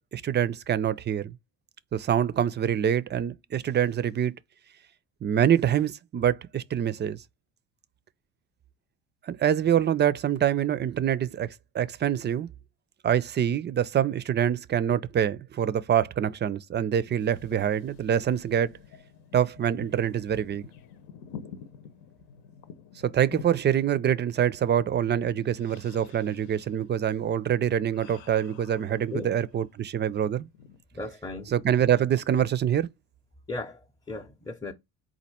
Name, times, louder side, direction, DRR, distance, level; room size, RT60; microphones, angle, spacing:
voice 1, 0.1-1.3 1.9-4.3 5.2-7.2 9.3-11.5 11.7-12.5 13.0-18.7 19.3-20.7 23.0-30.5 31.5-32.9, right 9 dB, 30° right, 0.4 m, -25 dB
sound 1, 17.2-29.6 30.0-30.8, left 7 dB, 75° left, 0.9 m, -49 dB
voice 2, 30.9-31.5 33.5-34.7, left 2 dB, 10° left, 0.7 m, -36 dB
4.1 x 2.6 x 4.3 m
supercardioid pair, 95°, 36 cm